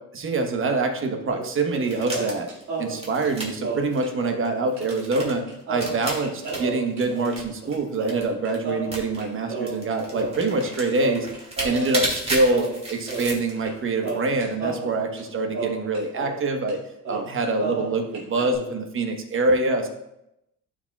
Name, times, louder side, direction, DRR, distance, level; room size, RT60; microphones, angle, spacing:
voice 1, 0.1-2.5 2.8-11.3 11.6-16.8 17.1-19.9, right 3 dB, 40° right, 4 dB, 1.1 m, -25 dB
sound 1, 1.3-1.8 2.1-4.5 4.8-4.9 5.1-10.7 11.0-12.2 12.5-13.8 14.0-16.4 16.7-16.8 17.0-18.6, right 3 dB, 65° right, 2.2 m, -32 dB
sound 2, 1.8-8.6 8.9-9.3 9.6-13.7 14.0-14.5, right 1 dB, 20° right, 2.1 m, -33 dB
11.5 x 4.9 x 2.3 m, 0.83 s
cardioid pair, 100°, 31 cm